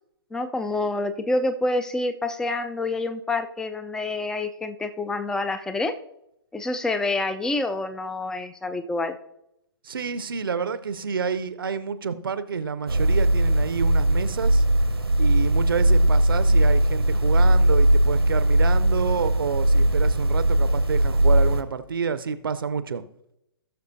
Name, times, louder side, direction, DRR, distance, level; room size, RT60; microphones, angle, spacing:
voice 1, 0.3-6.0 6.5-9.2, left 2 dB, 5° left, 11 dB, 0.4 m, -27 dB
voice 2, 9.8-14.6 15.2-23.0, right 6 dB, 65° right, 13 dB, 0.7 m, -28 dB
sound 1, 12.9-21.6, right 1 dB, 85° right, 1.0 m, -19 dB
18.5 x 6.6 x 2.7 m, 0.84 s
figure-of-eight pair, 120°, 13 cm